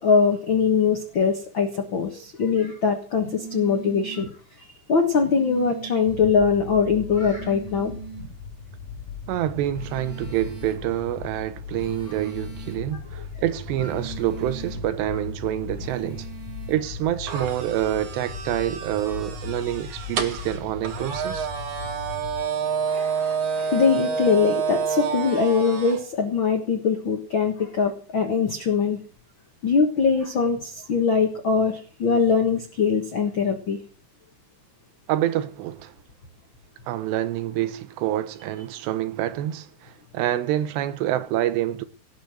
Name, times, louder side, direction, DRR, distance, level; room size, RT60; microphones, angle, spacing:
voice 1, 0.0-4.3 4.9-7.9 22.9-29.0 29.6-33.8, left 5 dB, 80° left, 1.1 m, -22 dB
sound 1, 3.2-4.3 5.2-6.3 7.2-8.3 9.8-10.8 11.8-12.8 13.8-14.8 15.8-16.8, right 6 dB, 20° right, 4.2 m, -40 dB
sound 2, 6.1-22.4, left 5 dB, 60° left, 2.7 m, -38 dB
voice 2, 9.3-16.3 16.7-21.5 35.1-36.0 36.9-41.8, right 13 dB, 85° right, 3.1 m, -27 dB
sound 3, 17.3-26.0, right 6 dB, 50° right, 2.1 m, -29 dB
17.5 x 7.0 x 7.8 m
omnidirectional pair, 4.8 m